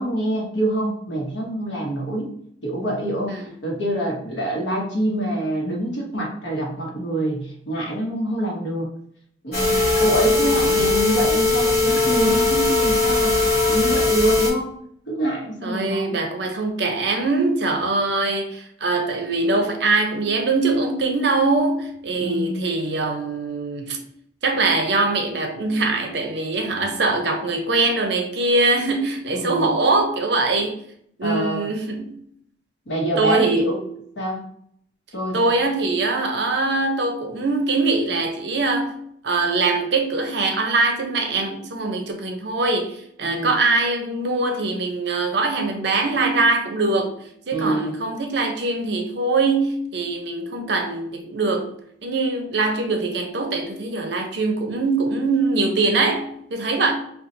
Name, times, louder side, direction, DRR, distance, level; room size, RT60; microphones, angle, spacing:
voice 1, 0.0-2.3 2.6-3.4 3.6-8.9 9.4-13.4 13.7-14.7 15.1-16.2 22.2-22.6 29.3-29.7 31.2-31.7 32.9-33.8 34.2-34.4 35.1-35.6 43.2-43.5 47.5-48.0, right 1 dB, 75° left, 1.0 m, -25 dB
sound 1, 9.5-14.5, left 3 dB, 50° left, 1.2 m, -19 dB
voice 2, 9.7-10.9 15.6-24.0 24.4-30.7 31.2-32.2 33.2-33.8 35.3-47.2 47.5-51.7 52.0-56.9, right 3 dB, 65° right, 0.6 m, -22 dB
4.1 x 2.3 x 2.6 m
head